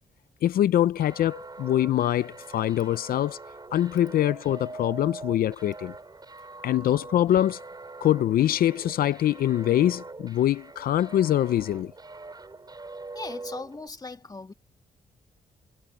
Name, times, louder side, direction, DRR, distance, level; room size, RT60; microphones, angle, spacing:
voice 1, 0.4-3.4 3.7-5.9 6.6-7.6 8.0-11.9, left 12 dB, 75° left, 0.5 m, -24 dB
sound 1, 1.0-13.9, right 3 dB, 25° right, 6.1 m, -43 dB
voice 2, 13.1-14.5, left 3 dB, 25° left, 2.4 m, -38 dB
cardioid pair, 80°, 15 cm